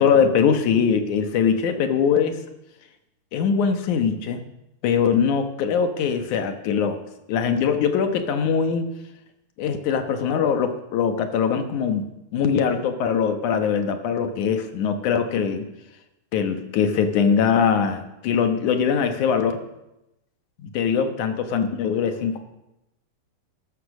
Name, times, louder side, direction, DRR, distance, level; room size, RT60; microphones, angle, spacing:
voice 1, 0.0-2.4 3.3-4.4 4.8-7.0 7.3-8.9 9.6-12.1 12.3-15.7 16.3-19.6 20.6-22.4, left 6 dB, 70° left, 7 dB, 2.5 m, -22 dB
13.5 x 12.0 x 6.3 m, 0.90 s
omnidirectional pair, 3.9 m